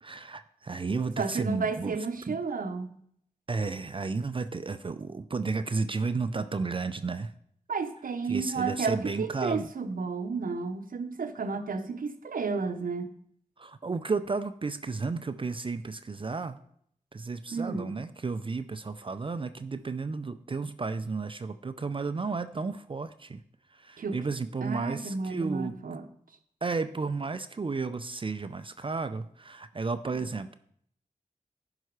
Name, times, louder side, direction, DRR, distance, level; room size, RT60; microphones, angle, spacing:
voice 1, 0.0-2.0 2.3-2.4 3.5-7.3 8.3-9.7 13.6-16.6 17.1-23.4 23.7-25.7 26.6-30.6, right 4 dB, 40° right, 10 dB, 0.4 m, -33 dB
voice 2, 1.2-2.9 7.7-13.1 17.5-17.9 24.0-24.2 24.6-26.0, right 4 dB, 85° right, 8 dB, 0.8 m, -32 dB
11.0 x 5.6 x 4.7 m, 0.67 s
wide cardioid pair, 75°, 14 cm